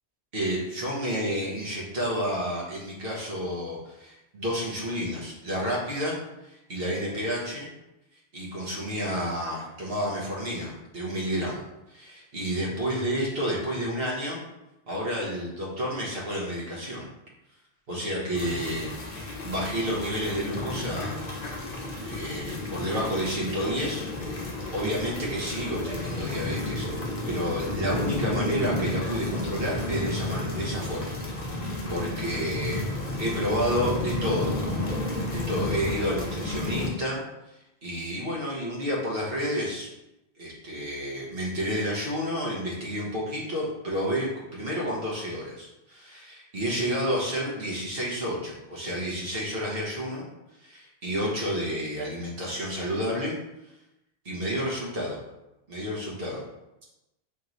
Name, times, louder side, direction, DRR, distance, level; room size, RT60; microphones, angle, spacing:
voice 1, 0.3-7.7 8.3-14.4 14.9-17.1 17.9-18.9 19.4-21.2 22.1-24.4 24.7-31.1 31.9-32.8 33.2-34.6 35.1-37.2 37.8-39.9 40.4-50.3 50.6-53.4 54.2-55.2 55.7-56.4, equal, 65° right, -4 dB, 1.3 m, -30 dB
sound 1, 18.3-36.9, left 2 dB, 45° left, 0.8 m, -32 dB
3.5 x 3.0 x 3.9 m, 0.95 s
omnidirectional pair, 1.1 m